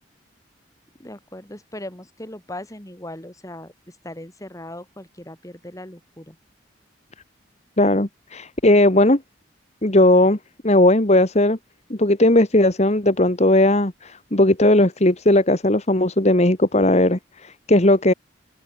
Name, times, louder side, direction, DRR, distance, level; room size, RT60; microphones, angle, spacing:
voice 1, 1.0-3.7 4.0-6.4, left 1 dB, 15° left, 3.9 m, -38 dB
voice 2, 7.8-9.2 9.8-10.4 10.6-11.6 11.9-18.1, left 1 dB, 35° left, 1.9 m, -17 dB
open air
head